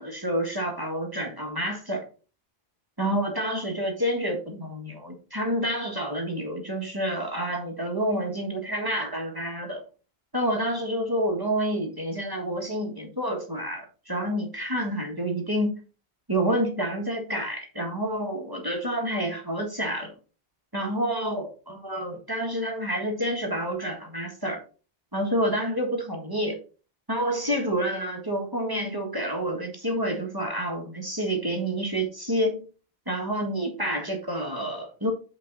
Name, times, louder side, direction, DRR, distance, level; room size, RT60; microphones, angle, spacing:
voice 1, 0.0-2.1 3.0-9.8 10.3-15.8 16.3-20.1 20.7-24.6 25.1-26.6 27.1-32.6 33.1-35.1, equal, 20° right, 1 dB, 1.6 m, -28 dB
8.5 x 4.7 x 3.9 m, 0.35 s
omnidirectional pair, 1.0 m